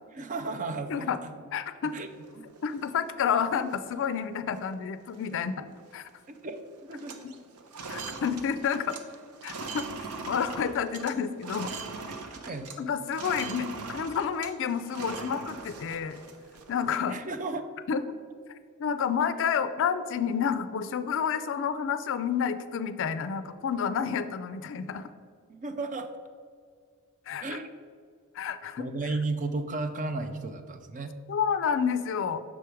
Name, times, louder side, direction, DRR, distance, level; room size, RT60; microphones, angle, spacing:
voice 1, 0.1-1.3 1.8-2.1 2.4-2.5 6.3-6.6 6.9-7.2 12.1-12.7 17.1-17.7 25.5-26.2 27.4-27.7 28.8-31.1, right 3 dB, 35° right, 8 dB, 0.4 m, -34 dB
voice 2, 1.5-2.0 2.6-5.5 5.9-6.1 7.2-7.3 7.9-8.9 9.4-9.8 10.3-11.7 12.8-16.2 16.7-17.2 17.9-18.2 18.8-25.1 27.3-27.4 28.3-28.9 31.3-32.4, left 7 dB, 60° left, 12 dB, 0.4 m, -29 dB
sound 1, 1.8-2.9 3.4-3.5 3.7-4.1 4.5-4.7 5.0-6.1 6.3-6.6 6.8-12.8 13.1-16.9, right 4 dB, 85° right, 0.7 m, -41 dB
6.2 x 4.8 x 4.5 m, 2.1 s
head